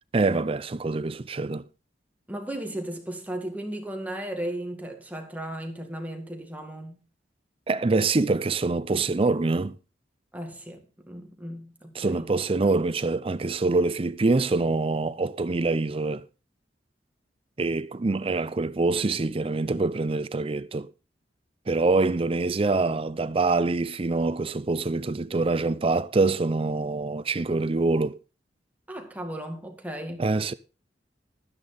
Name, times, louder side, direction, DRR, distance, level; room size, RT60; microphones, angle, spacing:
voice 1, 0.1-1.6 7.7-9.8 11.9-16.2 17.6-20.9 21.7-28.2 30.2-30.5, right 3 dB, 30° right, 0.5 m, -25 dB
voice 2, 2.3-7.0 10.3-12.3 28.9-30.3, right 1 dB, 10° right, 1.9 m, -35 dB
12.5 x 9.8 x 4.2 m
head